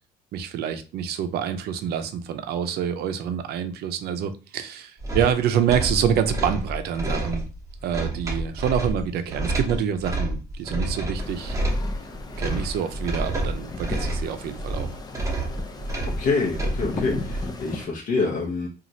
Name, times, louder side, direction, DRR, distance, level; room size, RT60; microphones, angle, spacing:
voice 1, 0.3-7.5 7.8-11.6 12.4-14.9, right 8 dB, 70° right, 9 dB, 0.5 m, -27 dB
sound 1, 5.0-17.5, right 1 dB, 20° right, 0.8 m, -29 dB
sound 2, 11.1-17.9, left 3 dB, 25° left, 0.4 m, -37 dB
voice 2, 16.2-18.7, left 4 dB, 55° left, -2 dB, 0.7 m, -26 dB
2.9 x 2.4 x 2.6 m, 0.33 s
cardioid pair, 110°, 17 cm